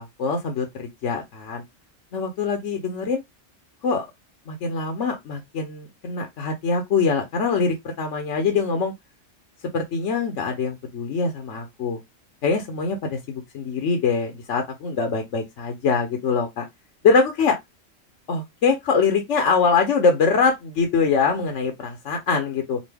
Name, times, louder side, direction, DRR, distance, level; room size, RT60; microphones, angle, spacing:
voice 1, 0.0-1.6 2.1-3.2 3.8-4.1 4.5-8.9 9.7-12.0 12.4-16.7 17.0-17.6 18.3-22.8, left 5 dB, 65° left, 1.1 m, -23 dB
5.2 x 2.4 x 3.3 m
omnidirectional pair, 1.3 m